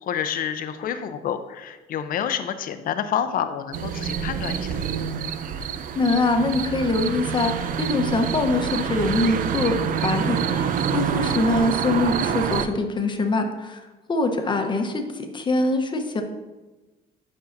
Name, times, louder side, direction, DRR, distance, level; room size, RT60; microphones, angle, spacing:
voice 1, 0.0-4.8 11.3-11.5, left 8 dB, 55° left, 10 dB, 0.6 m, -28 dB
sound 1, 3.7-12.7, right 7 dB, 55° right, 0.5 m, -27 dB
voice 2, 5.9-9.8 10.0-13.8 14.1-16.2, left 2 dB, 25° left, 4 dB, 0.9 m, -23 dB
9.4 x 5.5 x 2.6 m, 1.1 s
cardioid pair, 110°, 17 cm